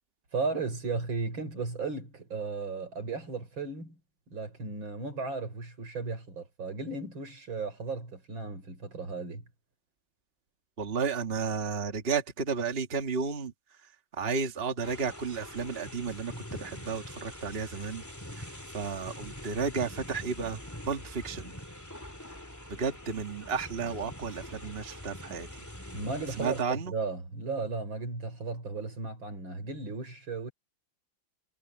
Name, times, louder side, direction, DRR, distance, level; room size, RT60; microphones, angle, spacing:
voice 1, 0.3-4.0 4.3-9.4 25.9-30.5, right 4 dB, 90° right, 5.6 m, -35 dB
voice 2, 10.8-13.5 14.1-18.0 18.4-18.5 18.7-20.6 20.9-21.5 22.7-25.5 26.4-26.9, right 5 dB, 30° right, 1.8 m, -32 dB
sound 1, 14.8-26.6, left 1 dB, 10° left, 2.9 m, -44 dB
omnidirectional pair, 2.1 m